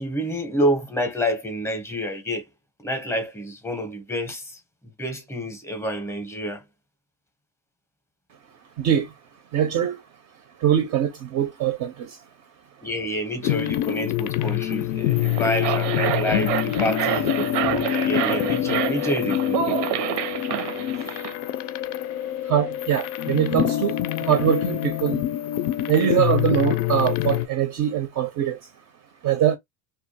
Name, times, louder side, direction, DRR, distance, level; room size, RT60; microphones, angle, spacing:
voice 1, 0.0-2.4 2.8-4.6 5.0-6.6 12.8-19.8, equal, 5° left, 0.6 m, -28 dB
voice 2, 8.8-9.1 9.5-10.0 10.6-12.2 20.1-20.5 22.4-25.2 25.9-28.7 29.2-29.6, right 9 dB, 40° right, 0.4 m, -23 dB
sound 1, 13.4-27.5, left 13 dB, 90° left, 0.5 m, -26 dB
sound 2, 15.1-21.3, right 12 dB, 90° right, 0.6 m, -28 dB
2.3 x 2.2 x 2.6 m
cardioid pair, 130°, 45 cm